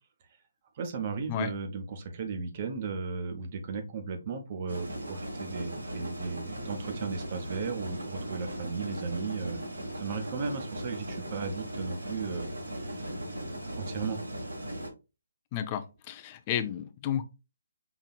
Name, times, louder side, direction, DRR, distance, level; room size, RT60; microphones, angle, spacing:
voice 1, 0.8-9.6 10.0-13.1 13.7-14.2, right 5 dB, 40° right, 6 dB, 0.9 m, -35 dB
sound 1, 4.7-14.9, right 1 dB, 85° right, 1.6 m, -38 dB
voice 2, 15.5-17.2, left 10 dB, 30° left, 11 dB, 0.5 m, -32 dB
5.8 x 2.8 x 2.3 m, 0.28 s
figure-of-eight pair, 145°, 0 cm